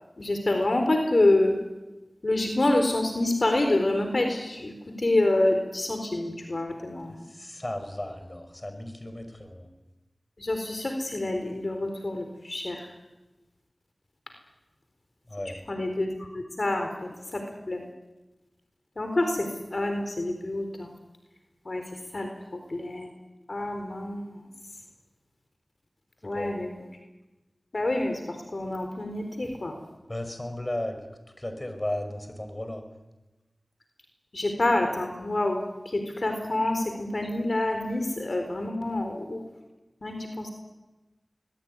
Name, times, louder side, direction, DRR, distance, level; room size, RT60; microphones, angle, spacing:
voice 1, 0.2-1.6 2.2-7.2 10.4-12.9 15.7-17.9 19.0-20.9 21.6-21.8 22.1-23.1 23.5-24.4 26.2-26.7 27.7-29.8 34.3-39.4 40.0-40.5, left 2 dB, 60° left, 5 dB, 4.1 m, -27 dB
voice 2, 7.1-9.7 15.3-15.6 26.3-26.5 30.1-31.0 31.4-32.8, left 1 dB, 25° left, 7 dB, 5.7 m, -35 dB
25.0 x 20.5 x 9.8 m, 1.1 s
wide cardioid pair, 45°, 0 cm